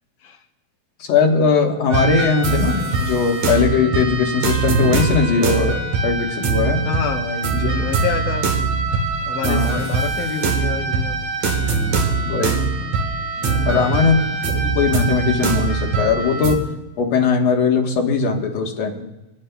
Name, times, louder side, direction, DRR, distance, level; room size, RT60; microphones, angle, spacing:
voice 1, 1.0-6.8 7.5-7.7 9.4-9.8 12.2-12.7 13.7-14.2 14.4-16.6 17.0-19.0, left 5 dB, 60° left, 1 dB, 2.4 m, -19 dB
sound 1, 1.9-16.6, right 4 dB, 65° right, 2.7 m, -22 dB
voice 2, 6.8-8.5 9.2-11.3 13.4-14.2, left 5 dB, 80° left, 3 dB, 2.5 m, -28 dB
27.0 x 10.5 x 2.3 m, 1.0 s
omnidirectional pair, 3.5 m